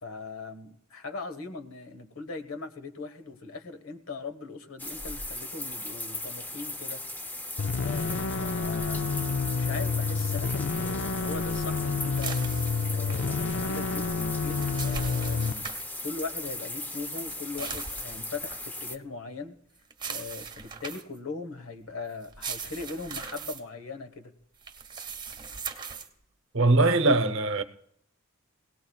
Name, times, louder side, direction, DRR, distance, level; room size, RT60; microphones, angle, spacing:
voice 1, 0.0-7.0 7.7-12.4 12.9-15.6 16.0-19.6 20.1-24.3, left 4 dB, 80° left, 1.3 m, -40 dB
sound 1, 4.8-19.0, left 2 dB, 10° left, 0.6 m, -38 dB
sound 2, 7.6-15.5, left 4 dB, 60° left, 0.5 m, -29 dB
sound 3, 12.2-13.3 14.3-15.9 17.1-18.6 19.9-21.2 22.2-23.6 24.6-26.1, right 5 dB, 20° right, 1.4 m, -39 dB
voice 2, 26.5-27.6, right 2 dB, 65° right, 0.8 m, -21 dB
23.5 x 18.0 x 2.4 m
head